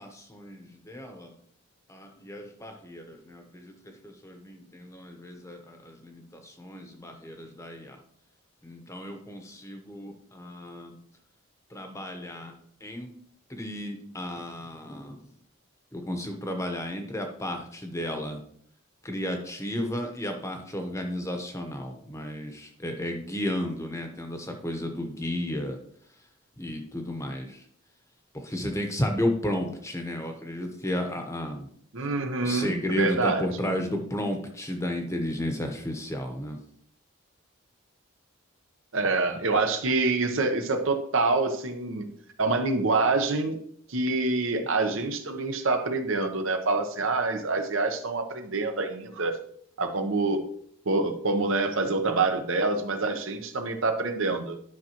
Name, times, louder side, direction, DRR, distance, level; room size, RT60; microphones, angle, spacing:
voice 1, 0.0-1.3 1.9-8.0 8.6-11.0 11.7-12.5 12.8-13.1 13.5-15.1 15.9-18.4 19.0-25.8 26.6-27.6 28.3-31.7 32.4-36.6, left 1 dB, 15° left, 4 dB, 0.9 m, -33 dB
voice 2, 31.9-33.7 38.9-42.1 42.4-43.6 43.9-49.4 49.8-50.4 50.8-54.6, right 3 dB, 70° right, 6 dB, 0.9 m, -26 dB
11.0 x 5.8 x 3.0 m, 0.65 s
head